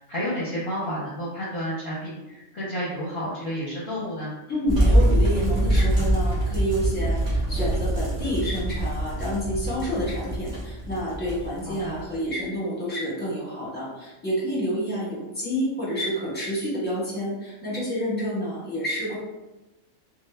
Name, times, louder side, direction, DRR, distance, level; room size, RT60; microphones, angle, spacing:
voice 1, 0.0-4.3 11.7-11.9, equal, 55° left, -8 dB, 0.7 m, -31 dB
voice 2, 4.5-19.2, equal, 10° left, -8 dB, 0.8 m, -29 dB
sound 1, 4.7-12.3, right 1 dB, 35° right, 0.6 m, -24 dB
2.1 x 2.0 x 3.2 m, 1.0 s
omnidirectional pair, 1.3 m